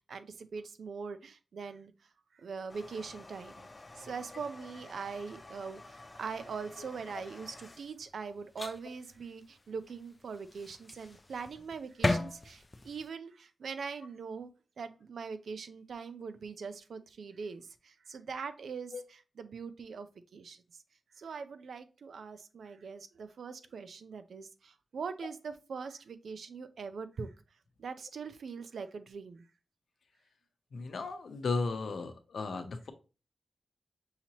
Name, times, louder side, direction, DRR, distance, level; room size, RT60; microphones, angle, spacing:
voice 1, 0.1-14.5 14.8-20.8 21.1-29.5, right 5 dB, 75° right, 10 dB, 0.5 m, -42 dB
sound 1, 2.7-13.1, left 2 dB, 25° left, 0.3 m, -40 dB
voice 2, 30.7-32.9, left 4 dB, 65° left, 7 dB, 0.7 m, -35 dB
5.6 x 2.9 x 2.9 m, 0.32 s
wide cardioid pair, 170°, 0 cm